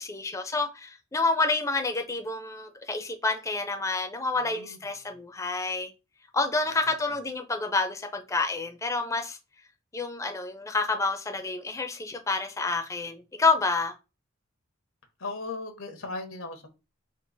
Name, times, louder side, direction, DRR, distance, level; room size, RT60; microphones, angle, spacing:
voice 1, 0.0-5.9 6.3-9.4 9.9-13.9, left 3 dB, 15° left, 0.4 m, -28 dB
voice 2, 4.4-4.8 5.0-5.2 15.2-16.7, left 3 dB, 90° left, 0.9 m, -37 dB
3.7 x 2.8 x 3.9 m
head